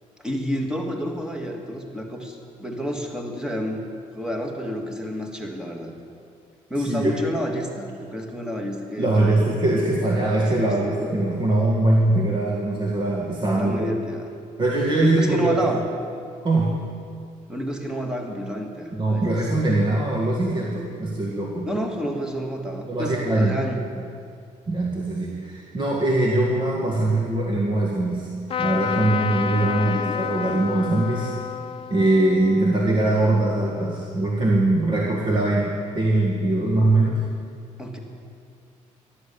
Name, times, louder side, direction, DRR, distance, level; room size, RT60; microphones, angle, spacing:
voice 1, 0.2-3.8 4.2-5.9 6.7-9.4 10.4-11.0 13.5-14.3 15.0-15.8 17.5-19.3 21.7-23.8 29.6-30.2 37.8-38.0, equal, 5° right, 2 dB, 2.0 m, -29 dB
voice 2, 6.8-7.2 9.0-13.9 14.6-15.6 16.4-16.7 18.9-21.7 22.9-23.6 24.7-28.3 28.6-31.3 31.9-37.2, right 2 dB, 35° right, -2 dB, 1.8 m, -22 dB
Trumpet, 28.5-34.0, left 8 dB, 45° left, 0.7 m, -30 dB
14.0 x 12.0 x 6.9 m, 2.3 s
cardioid pair, 115°, 13 cm